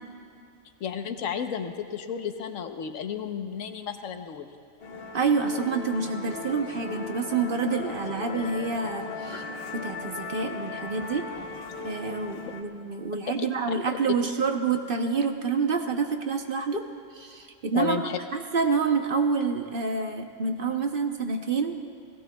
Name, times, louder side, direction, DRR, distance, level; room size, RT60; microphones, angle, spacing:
voice 1, 0.8-4.5 17.7-18.2, left 7 dB, 75° left, 7 dB, 1.2 m, -32 dB
Musical instrument, 4.8-12.6, left 3 dB, 50° left, 1.2 m, -37 dB
voice 2, 5.1-9.4 9.7-11.3 11.8-16.9 17.1-18.0 18.3-21.8, right 5 dB, 50° right, 5 dB, 0.9 m, -27 dB
29.5 x 17.0 x 2.3 m, 2.3 s
omnidirectional pair, 1.4 m